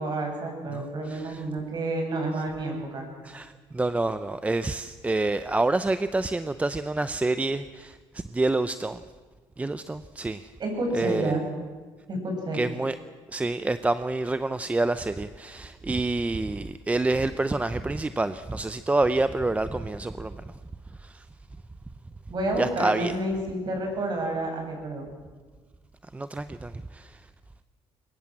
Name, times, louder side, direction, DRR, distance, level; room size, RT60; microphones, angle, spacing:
voice 1, 0.0-3.0 10.6-11.4 12.1-12.6 22.3-25.1, right 1 dB, 40° right, 8.0 m, -29 dB
voice 2, 0.7-1.4 3.2-9.0 9.6-10.5 10.9-11.3 12.5-12.9 13.3-20.5 21.0-21.2 22.6-23.2 26.1-27.2, right 2 dB, 15° right, 0.6 m, -28 dB
23.0 x 21.0 x 7.6 m
cardioid pair, 120°, 11 cm